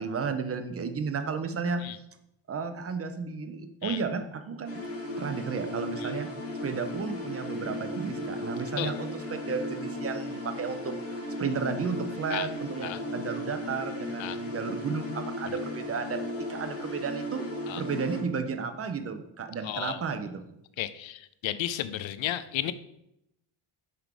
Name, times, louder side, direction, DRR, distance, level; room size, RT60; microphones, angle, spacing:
voice 1, 0.0-1.8 2.5-4.8 5.2-6.3 6.6-10.9 11.4-16.2 16.5-17.4 17.8-20.4, right 5 dB, 30° right, 8 dB, 0.5 m, -33 dB
sound 1, 4.7-18.2, left 1 dB, 30° left, 1.3 m, -36 dB
voice 2, 19.6-20.0 20.8-22.7, left 13 dB, 65° left, 14 dB, 0.6 m, -33 dB
5.9 x 5.1 x 4.6 m, 0.82 s
cardioid pair, 165°, 49 cm